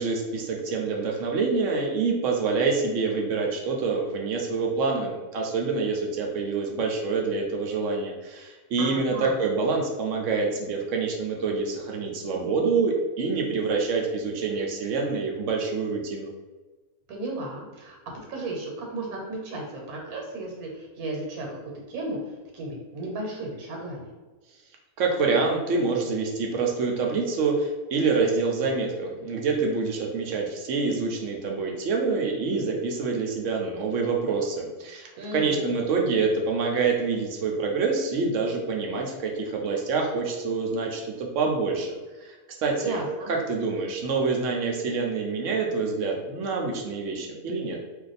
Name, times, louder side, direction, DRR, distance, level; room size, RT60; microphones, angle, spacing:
voice 1, 0.0-16.3 25.0-43.0 43.3-47.8, right 4 dB, 65° right, 1 dB, 0.8 m, -26 dB
voice 2, 8.8-9.4 17.1-18.0 18.3-24.1 35.1-35.9 42.8-43.3, right 2 dB, 85° right, 0 dB, 1.3 m, -34 dB
2.5 x 2.2 x 4.0 m, 1.2 s
omnidirectional pair, 1.5 m